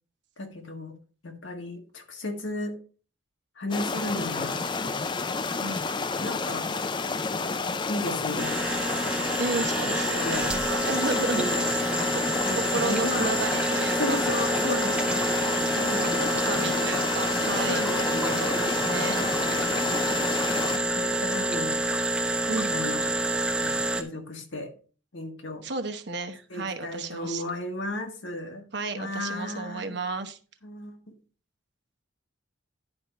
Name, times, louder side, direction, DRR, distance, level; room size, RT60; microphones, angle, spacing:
voice 1, 0.4-0.9 1.2-2.8 3.6-4.7 6.2-6.7 7.9-8.6 9.9-10.5 10.8-10.9 11.3-13.4 13.9-17.0 17.7-18.6 19.0-19.7 20.7-21.8 22.7-23.1 23.5-24.7 25.1-25.7 26.5-28.6 28.9-30.0 30.6-31.1, left 1 dB, 70° left, 1.6 m, -35 dB
sound 1, 3.7-20.8, left 4 dB, 25° left, 0.4 m, -30 dB
sound 2, 8.4-24.0, right 1 dB, 5° right, 1.0 m, -28 dB
voice 2, 9.4-11.4 12.7-14.2 16.2-19.3 22.5-22.7 25.6-27.4 28.7-30.4, right 3 dB, 55° right, 1.0 m, -32 dB
11.0 x 4.4 x 5.2 m
head